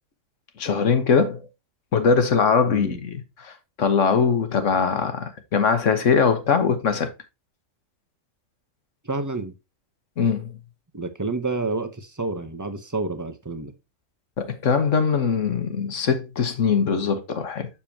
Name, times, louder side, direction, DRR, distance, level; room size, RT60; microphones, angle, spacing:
voice 1, 0.6-1.4 1.9-7.1 10.2-10.5 14.4-17.7, left 5 dB, 65° left, 1.4 m, -21 dB
voice 2, 2.7-3.0 9.0-9.5 10.9-13.7, right 3 dB, 20° right, 0.6 m, -29 dB
7.1 x 6.8 x 2.8 m
omnidirectional pair, 1.4 m